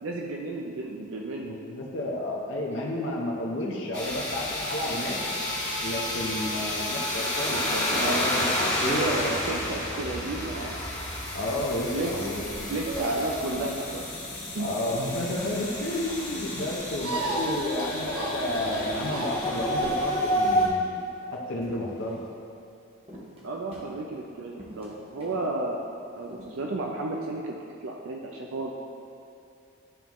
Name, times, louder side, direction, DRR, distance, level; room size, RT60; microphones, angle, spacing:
voice 1, 0.0-1.6 7.5-10.8 11.9-12.1 12.4-14.1 14.5-14.7 17.3-17.6 23.4-25.8 26.1-27.6 27.8-28.7, right 2 dB, 75° right, 0 dB, 0.5 m, -33 dB
voice 2, 1.4-5.2 5.8-7.6 7.9-8.5 8.8-9.0 11.3-12.7 14.6-22.2, left 1 dB, 60° left, -2 dB, 0.7 m, -31 dB
sound 1, 3.9-20.7, left 1 dB, 15° left, 1.2 m, -30 dB
sound 2, 12.0-20.1, right 2 dB, 90° right, 1.0 m, -35 dB
sound 3, 12.1-13.1 13.5-16.1 16.6-17.5 17.8-17.9 18.1-19.0 19.7-22.3 23.1-24.3 24.6-25.5 25.9-26.0 26.3-26.6, right 1 dB, 30° right, 0.9 m, -47 dB
11.0 x 3.6 x 3.0 m, 2.6 s
head